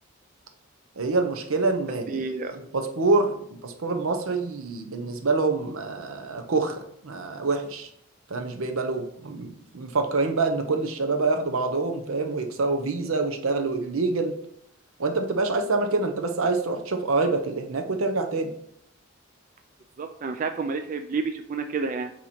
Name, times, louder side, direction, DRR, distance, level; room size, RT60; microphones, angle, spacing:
voice 1, 1.0-2.2 2.5-7.9 8.3-14.4 15.0-18.5, right 3 dB, 80° right, 6 dB, 0.7 m, -26 dB
voice 2, 2.1-2.5 20.0-22.1, right 4 dB, 40° right, 6 dB, 0.3 m, -30 dB
8.4 x 3.0 x 4.2 m, 0.72 s
head